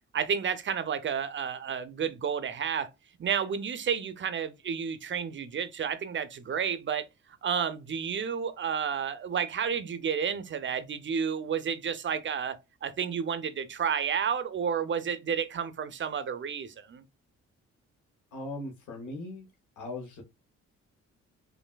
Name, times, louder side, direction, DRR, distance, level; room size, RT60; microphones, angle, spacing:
voice 1, 0.1-2.9 3.2-7.1 7.4-17.0, right 7 dB, 40° right, 0.5 m, -31 dB
voice 2, 18.3-19.5 19.8-20.2, left 2 dB, 80° left, 1.1 m, -39 dB
3.1 x 2.6 x 2.2 m
cardioid pair, 70°, 30 cm